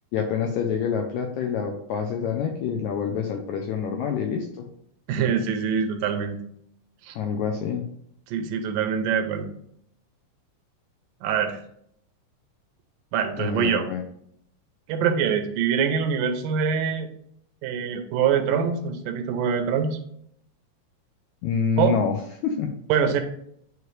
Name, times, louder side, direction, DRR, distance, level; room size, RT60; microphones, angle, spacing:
voice 1, 0.1-4.7 7.1-7.8 13.3-14.0 21.4-22.1 22.4-22.7, left 7 dB, 80° left, 3 dB, 1.7 m, -27 dB
voice 2, 5.1-6.4 7.0-7.2 8.3-9.5 11.2-11.6 13.1-13.9 14.9-17.1 17.6-20.0 21.8-21.9 22.9-23.2, right 7 dB, 80° right, 7 dB, 2.2 m, -24 dB
9.4 x 3.2 x 3.1 m, 0.69 s
omnidirectional pair, 3.9 m